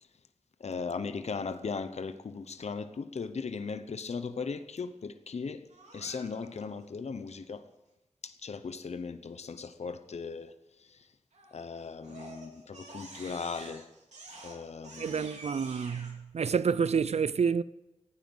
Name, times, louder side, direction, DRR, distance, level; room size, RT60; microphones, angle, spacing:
voice 1, 0.6-5.7 5.9-7.6 8.2-10.5 10.9-11.1 11.5-13.9 14.4-15.3, left 5 dB, 75° left, 0.9 m, -38 dB
Crying sobbing, 5.7-6.6 11.3-11.6 12.0-16.1, right 2 dB, 90° right, 3.2 m, -48 dB
voice 2, 15.0-17.6, right 6 dB, 70° right, 0.5 m, -28 dB
15.5 x 9.3 x 7.9 m
cardioid pair, 50°, 11 cm